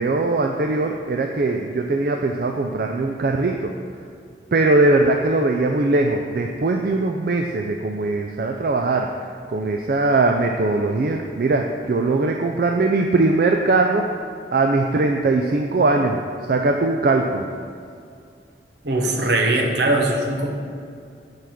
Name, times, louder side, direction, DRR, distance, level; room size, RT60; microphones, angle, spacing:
voice 1, 0.0-3.7 4.5-9.1 9.5-14.1 14.5-16.2 16.5-17.5, right 2 dB, 55° right, 3 dB, 0.4 m, -20 dB
voice 2, 18.8-20.5, right 2 dB, 75° right, 1 dB, 1.1 m, -20 dB
7.0 x 4.8 x 5.9 m, 2.4 s
head